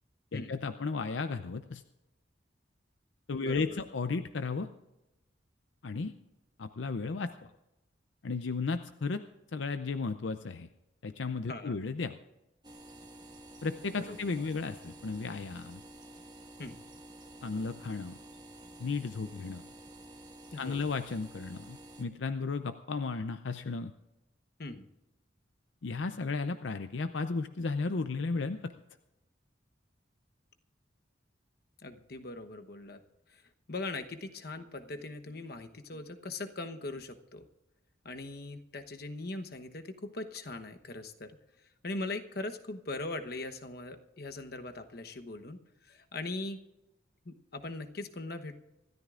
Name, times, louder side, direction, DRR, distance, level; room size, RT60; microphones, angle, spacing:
voice 1, 0.3-1.8 3.3-4.7 5.8-6.1 6.6-7.3 8.2-9.2 9.5-10.7 11.0-12.2 13.6-15.8 17.4-18.2 18.8-19.7 20.6-23.9 25.8-28.7, left 4 dB, 75° left, 10 dB, 0.6 m, -34 dB
voice 2, 3.3-3.8 11.5-11.8 14.0-14.5 16.6-16.8 20.5-20.8 24.6-24.9 31.8-33.0 33.3-33.4 33.7-37.5 38.0-41.3 41.8-45.6 45.9-46.6 47.2-48.6, left 2 dB, 55° left, 7 dB, 1.0 m, -40 dB
sound 1, 12.6-22.0, right 1 dB, 20° right, 1.4 m, -51 dB
26.0 x 13.0 x 2.5 m, 0.96 s
head